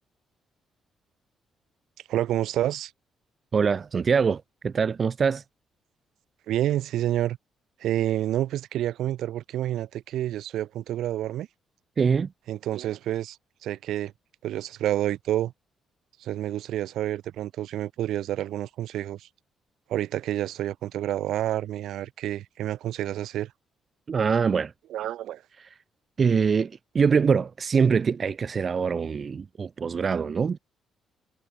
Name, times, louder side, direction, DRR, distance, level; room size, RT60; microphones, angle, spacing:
voice 1, 2.1-2.9 6.5-7.4 7.8-11.5 12.5-13.4 13.6-14.1 14.4-15.5 16.2-19.3 19.9-23.5 24.9-25.4, right 13 dB, 80° right, 2.7 m, -29 dB
voice 2, 3.5-5.4 12.0-12.3 24.1-24.7 26.2-30.6, right 6 dB, 40° right, 1.1 m, -24 dB
cardioid pair, 90°, 0 cm